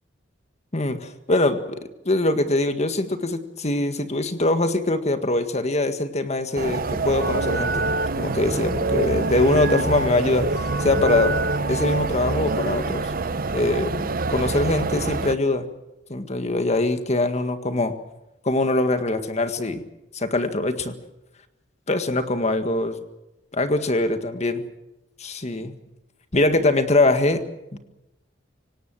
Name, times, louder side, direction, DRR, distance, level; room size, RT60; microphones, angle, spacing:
voice 1, 0.7-1.8 2.1-7.9 8.2-11.4 11.7-13.1 13.5-15.7 16.1-18.0 18.4-19.8 20.1-20.9 21.9-23.0 23.5-24.6 25.2-25.7 26.3-27.4 27.7-27.8, left 2 dB, 35° left, 8 dB, 1.7 m, -23 dB
sound 1, 6.6-15.3, right 3 dB, 50° right, 0.8 m, -27 dB
sound 2, 7.2-12.8, right 2 dB, 70° right, 1.3 m, -28 dB
25.5 x 18.0 x 7.6 m, 0.95 s
head